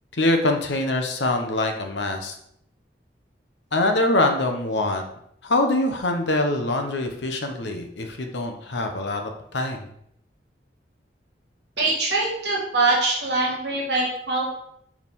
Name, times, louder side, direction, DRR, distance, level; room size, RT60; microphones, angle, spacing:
voice 1, 0.1-2.3 3.7-5.1 5.4-9.9, left 2 dB, 90° left, 4 dB, 1.0 m, -24 dB
voice 2, 11.8-14.4, right 2 dB, 70° right, -3 dB, 1.8 m, -23 dB
6.1 x 4.7 x 3.6 m, 0.72 s
head